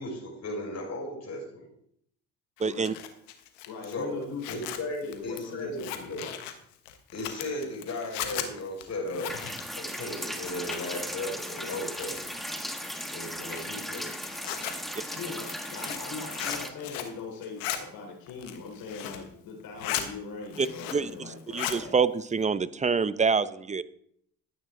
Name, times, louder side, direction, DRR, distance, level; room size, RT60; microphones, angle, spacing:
voice 1, 0.0-1.7 3.8-6.2 7.1-9.3 9.8-12.2 13.1-14.2, left 1 dB, 45° left, 0 dB, 5.2 m, -36 dB
Zipper (clothing), 2.6-11.1 11.4-12.4 12.9-17.2 17.4-17.8 18.3-19.3 19.6-20.1 20.4-21.1 21.4-21.8, left 11 dB, 90° left, 1.3 m, -37 dB
voice 2, 2.6-2.9 14.9-15.0 20.6-23.8, right 5 dB, 20° right, 16 dB, 0.7 m, -27 dB
voice 3, 3.7-4.6 5.0-6.2 15.1-21.9, left 4 dB, 70° left, 2 dB, 3.7 m, -41 dB
sound 1, 9.3-16.7, equal, ahead, 1.6 m, -37 dB
13.0 x 8.9 x 3.8 m, 0.69 s
hypercardioid pair, 65°, 37 cm